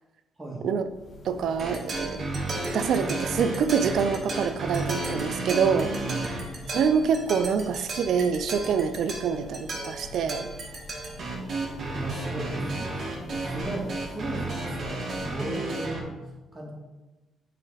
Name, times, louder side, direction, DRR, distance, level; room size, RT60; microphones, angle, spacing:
Church bell, 0.7-15.7, left 2 dB, 50° left, 0.9 m, -46 dB
voice 1, 1.2-2.2 2.7-5.9 6.7-10.5, right 6 dB, 70° right, 11 dB, 0.5 m, -26 dB
sound 1, 1.6-16.0, right 2 dB, 50° right, 1.6 m, -33 dB
voice 2, 5.9-6.4 11.1-16.7, right 2 dB, 20° right, -2 dB, 2.2 m, -37 dB
7.9 x 4.2 x 4.2 m, 1.1 s
cardioid pair, 90°, 0 cm